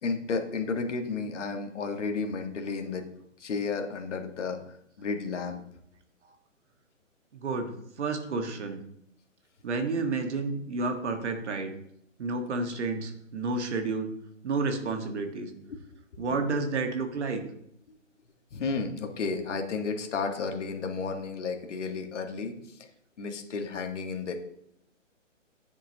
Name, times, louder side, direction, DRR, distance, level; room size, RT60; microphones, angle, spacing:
voice 1, 0.0-3.1 3.4-4.6 5.0-5.6 16.1-16.6 17.9-18.0 18.5-22.8 23.2-24.4, left 4 dB, 65° left, 4 dB, 1.6 m, -32 dB
voice 2, 7.3-8.8 9.6-11.7 12.2-14.1 14.4-15.5 16.2-17.4, right 3 dB, 60° right, 5 dB, 1.7 m, -30 dB
10.0 x 7.2 x 2.9 m, 0.72 s
figure-of-eight pair, 140°, 39 cm